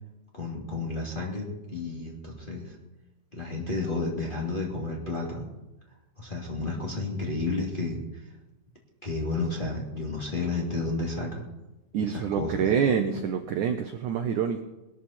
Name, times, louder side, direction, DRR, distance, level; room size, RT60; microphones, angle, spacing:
voice 1, 0.3-2.7 3.3-5.5 6.2-8.0 9.0-11.4 12.0-12.6, left 3 dB, 15° left, -3 dB, 2.1 m, -31 dB
voice 2, 11.9-14.6, right 7 dB, 80° right, 7 dB, 1.7 m, -26 dB
21.0 x 13.0 x 4.4 m, 1.0 s
omnidirectional pair, 4.7 m